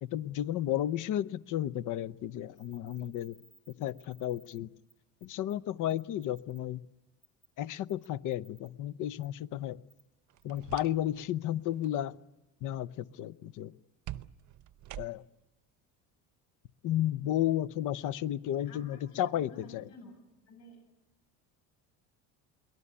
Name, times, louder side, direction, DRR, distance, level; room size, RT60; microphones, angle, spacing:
voice 1, 0.0-3.4 3.8-4.7 5.2-6.8 7.6-9.8 10.4-12.2 12.6-13.7 15.0-15.2 16.8-19.9, left 12 dB, 55° left, 17 dB, 0.8 m, -33 dB
sound 1, 2.6-4.6 4.9-5.0 5.2-5.5 5.9-6.6 7.2-7.5 7.9-8.7 9.2-9.3 9.9-10.0 10.4-10.6, right 4 dB, 30° left, 3.7 m, -61 dB
sound 2, 10.3-11.3 11.6-12.0 14.1-15.5, right 14 dB, 50° right, 0.8 m, -46 dB
voice 2, 18.6-20.1 20.5-20.8, left 2 dB, 85° left, 4 dB, 8.0 m, -52 dB
23.0 x 18.5 x 9.8 m, 0.99 s
supercardioid pair, 110°, 37 cm